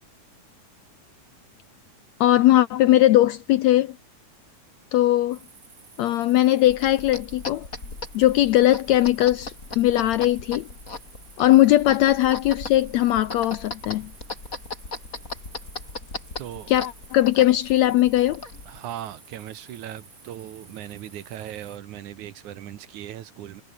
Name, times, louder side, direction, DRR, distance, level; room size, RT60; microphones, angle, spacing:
voice 1, 2.2-4.0 4.9-5.4 6.0-7.7 8.1-10.7 11.4-14.1 16.7-18.4, left 14 dB, 80° left, 1.7 m, -19 dB
sound 1, 5.3-21.8, right 4 dB, 30° right, 2.6 m, -52 dB
sound 2, 6.6-18.8, left 3 dB, 25° left, 4.1 m, -38 dB
voice 2, 16.4-16.7 18.7-23.6, right 12 dB, 70° right, 2.5 m, -38 dB
omnidirectional pair, 3.8 m